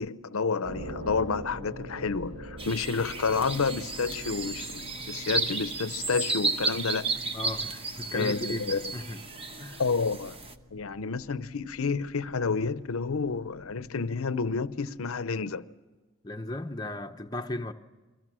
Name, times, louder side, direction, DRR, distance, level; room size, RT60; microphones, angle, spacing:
voice 1, 0.0-7.2 8.1-8.9 9.8-10.4 10.7-15.7, left 4 dB, 80° left, 0.7 m, -30 dB
sound 1, 0.6-15.4, equal, 65° right, 3.3 m, -46 dB
sound 2, 2.6-10.5, right 3 dB, 25° right, 1.0 m, -33 dB
voice 2, 7.3-9.2 9.6-9.8 16.2-17.7, left 1 dB, 20° left, 0.7 m, -36 dB
29.5 x 22.5 x 6.2 m
head